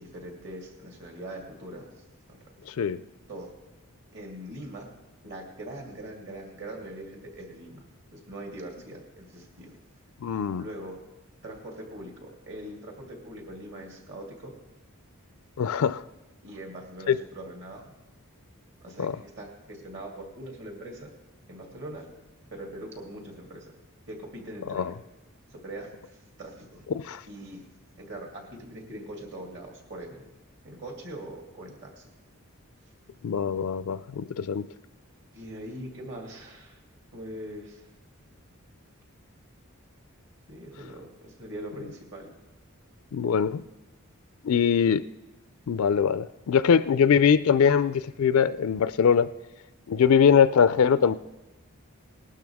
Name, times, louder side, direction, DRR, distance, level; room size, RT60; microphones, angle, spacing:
voice 1, 0.0-1.9 2.3-2.4 3.3-3.5 4.1-4.9 5.2-7.8 8.1-9.8 10.6-11.0 11.4-14.6 16.4-17.9 18.8-21.1 21.5-22.1 22.5-23.7 24.1-24.9 25.5-26.8 27.3-27.6 28.0-30.3 30.6-32.1 35.3-36.8 37.1-37.8 40.5-42.3, right 1 dB, 55° right, 1 dB, 2.7 m, -42 dB
voice 2, 2.7-3.0 10.2-10.6 15.6-16.0 17.1-17.2 19.0-19.2 24.7-24.9 26.9-27.2 33.2-34.7 43.1-43.6 44.4-45.0 45.7-49.3 49.9-51.1, left 7 dB, 75° left, 15 dB, 0.4 m, -22 dB
19.0 x 12.0 x 3.6 m, 1.1 s
head